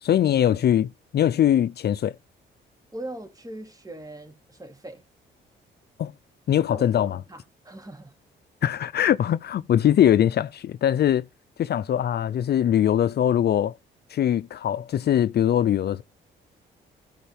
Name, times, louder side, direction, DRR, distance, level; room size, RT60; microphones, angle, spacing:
voice 1, 0.0-2.1 6.0-6.1 6.5-7.2 8.6-11.2 11.6-13.7 14.1-16.0, left 10 dB, 55° left, 0.6 m, -22 dB
voice 2, 2.9-5.0 6.7-8.1, right 1 dB, 20° right, 3.3 m, -40 dB
14.5 x 5.6 x 3.5 m
cardioid pair, 90°, 20 cm